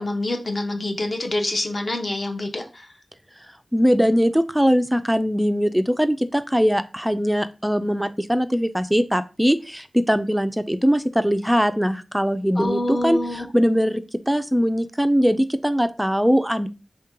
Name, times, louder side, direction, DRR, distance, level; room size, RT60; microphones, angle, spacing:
voice 1, 0.0-2.9 12.6-13.5, left 1 dB, 45° left, 3 dB, 0.8 m, -26 dB
voice 2, 3.7-16.7, equal, 5° right, 10 dB, 0.4 m, -21 dB
3.6 x 2.8 x 3.6 m, 0.32 s
wide cardioid pair, 90°, 0 cm